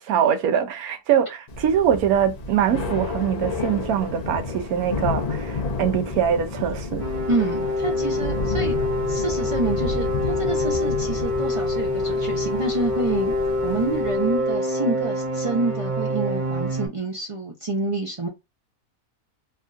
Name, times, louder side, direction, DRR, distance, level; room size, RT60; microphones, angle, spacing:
voice 1, 0.0-7.0, right 9 dB, 80° right, 1.1 m, -23 dB
Thunder / Rain, 1.5-14.4, left 3 dB, 45° left, 0.5 m, -31 dB
sound 1, 7.0-16.9, left 1 dB, 25° right, 0.8 m, -26 dB
voice 2, 7.3-8.8 9.1-13.4 13.6-18.3, right 3 dB, 60° right, 0.3 m, -27 dB
3.4 x 2.3 x 2.4 m
omnidirectional pair, 1.5 m